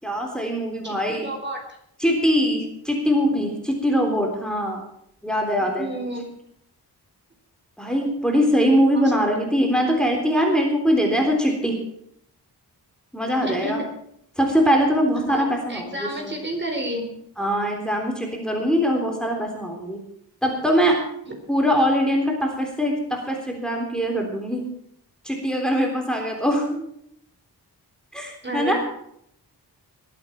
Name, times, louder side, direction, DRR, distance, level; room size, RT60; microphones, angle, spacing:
voice 1, 0.0-1.3 2.0-4.8 5.2-5.9 7.8-11.8 13.1-13.8 14.4-16.3 17.4-20.0 20.4-21.0 21.5-24.6 25.2-26.8 28.1-28.8, equal, ahead, 1 dB, 3.6 m, -22 dB
voice 2, 0.8-1.6 5.8-6.3 8.9-9.1 13.4-13.7 15.2-17.1 21.3-21.4 28.4-28.8, right 1 dB, 25° right, 2 dB, 4.1 m, -30 dB
21.5 x 8.9 x 6.0 m, 0.72 s
wide cardioid pair, 85°, 40 cm